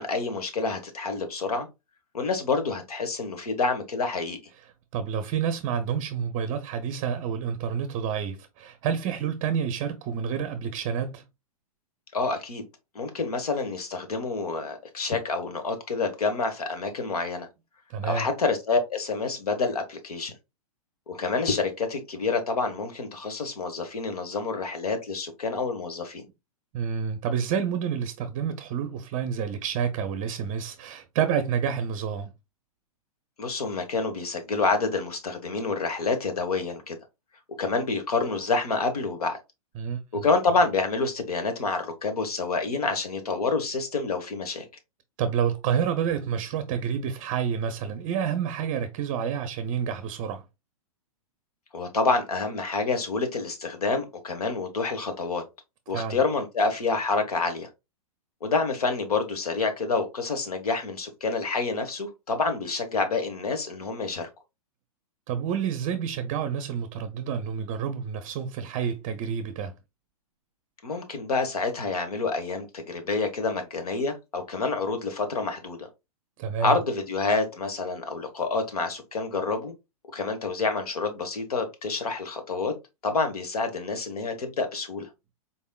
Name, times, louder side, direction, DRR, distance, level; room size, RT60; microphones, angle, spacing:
voice 1, 0.0-1.7 2.1-4.4 12.1-12.6 12.9-17.5 18.0-20.3 21.1-26.2 33.4-37.0 37.6-39.4 40.1-44.6 51.7-55.4 55.9-57.7 58.4-64.3 70.8-75.9 76.6-79.7 80.1-82.7 83.0-85.1, left 4 dB, 85° left, 1.2 m, -28 dB
voice 2, 4.9-11.2 17.9-18.3 26.7-32.3 39.8-40.3 45.2-50.4 55.9-56.2 65.3-69.7 76.4-76.8, right 7 dB, 40° right, 0.5 m, -29 dB
4.1 x 3.5 x 2.3 m
hypercardioid pair, 120°, 19 cm